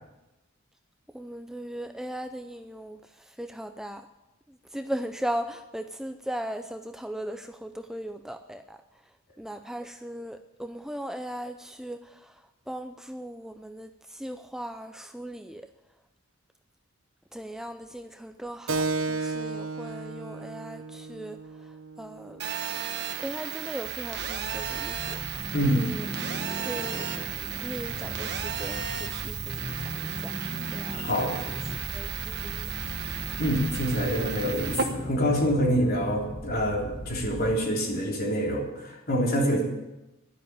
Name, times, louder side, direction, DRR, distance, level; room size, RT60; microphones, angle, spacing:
voice 1, 1.1-3.0 3.4-4.0 4.7-8.8 9.4-12.3 12.7-15.7 17.3-21.4 22.0-22.4 23.2-25.2 25.7-26.1 26.6-27.1 27.6-29.7 30.0-30.3 30.7-31.6 31.9-32.7, right 1 dB, ahead, 7 dB, 0.5 m, -38 dB
Keyboard (musical), 18.7-23.8, right 3 dB, 75° right, 0.8 m, -34 dB
Telephone, 22.4-34.8, right 8 dB, 55° right, 1.3 m, -34 dB
sound 1, 23.9-37.6, left 1 dB, 25° left, 1.1 m, -38 dB
voice 2, 25.5-25.9 30.9-31.4 33.4-39.6, equal, 50° left, -1 dB, 3.7 m, -26 dB
12.0 x 11.5 x 8.9 m, 0.99 s
head